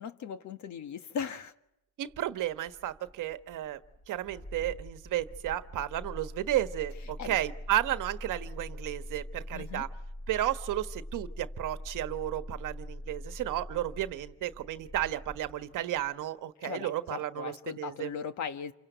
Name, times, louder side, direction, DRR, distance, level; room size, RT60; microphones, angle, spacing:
voice 1, 0.0-1.5 7.2-7.4 9.5-9.9 16.6-18.7, left 7 dB, 50° left, 1.6 m, -38 dB
voice 2, 2.0-3.8 4.1-9.9 10.3-18.1, right 13 dB, 55° right, 1.4 m, -33 dB
Engine starting, 2.1-16.2, left 1 dB, 30° left, 6.1 m, -44 dB
28.5 x 24.5 x 8.1 m
cardioid pair, 120°, 38 cm